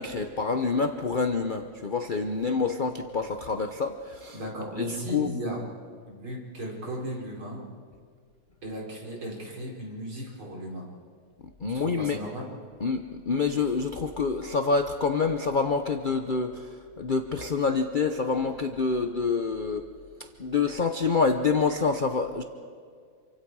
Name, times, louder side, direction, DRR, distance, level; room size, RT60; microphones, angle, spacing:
voice 1, 0.0-4.4 4.8-5.3 11.6-12.2 12.8-19.9 20.4-22.4, left 4 dB, 50° left, 6 dB, 0.5 m, -27 dB
voice 2, 4.3-5.6 6.1-7.6 8.6-10.9 11.7-12.4, equal, 85° right, -2 dB, 5.5 m, -36 dB
28.0 x 25.0 x 4.8 m, 2.1 s
omnidirectional pair, 2.2 m